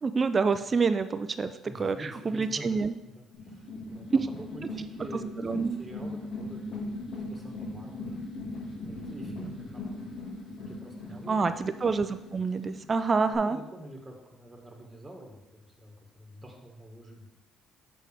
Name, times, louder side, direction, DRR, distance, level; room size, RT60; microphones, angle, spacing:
voice 1, 0.0-2.0 2.3-2.9 4.1-4.3 5.4-5.8 11.3-13.6, right 4 dB, 30° right, 11 dB, 0.4 m, -27 dB
voice 2, 1.6-4.1 4.4-10.1 10.6-11.4 13.3-17.3, right 1 dB, 10° right, 1 dB, 1.8 m, -47 dB
sound 1, 3.3-13.3, left 1 dB, 65° left, 2.1 m, -39 dB
7.8 x 6.1 x 3.5 m, 0.96 s
cardioid pair, 100°, 0 cm